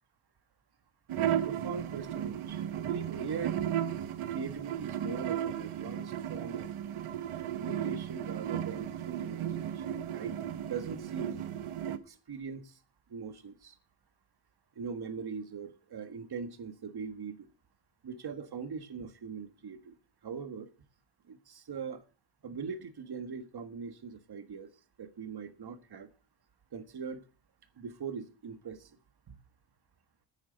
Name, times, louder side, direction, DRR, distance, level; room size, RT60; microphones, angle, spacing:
sound 1, 1.1-12.0, right 10 dB, 85° right, 1.1 m, -35 dB
voice 1, 1.3-3.8 4.3-6.7 7.4-10.4 10.7-11.4 11.9-12.8 13.1-13.8 14.8-17.5 18.0-20.0 20.2-20.7 21.3-22.0 22.4-24.7 25.0-26.1 26.7-27.2 27.8-29.0 29.3-29.4, right 5 dB, 50° right, 10 dB, 1.6 m, -41 dB
9.5 x 9.3 x 7.8 m, 0.37 s
cardioid pair, 115°, 49 cm